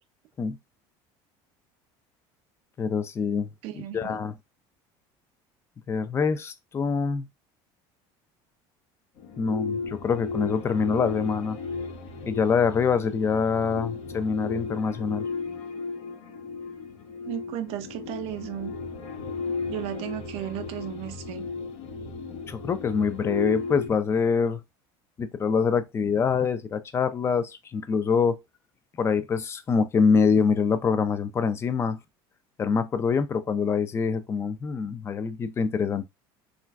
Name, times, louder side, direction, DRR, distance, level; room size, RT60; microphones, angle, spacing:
voice 1, 2.8-3.5 3.7-4.3 5.9-7.3 9.4-11.6 12.3-15.3 22.5-24.6 25.2-28.4 29.0-32.0 32.6-36.1, left 5 dB, 25° left, 0.3 m, -25 dB
voice 2, 3.6-4.2 17.3-18.7 19.7-21.5, right 11 dB, 60° right, 0.5 m, -34 dB
sound 1, 9.2-23.9, left 4 dB, 65° left, 0.7 m, -35 dB
3.0 x 2.5 x 2.2 m
cardioid pair, 130°, 11 cm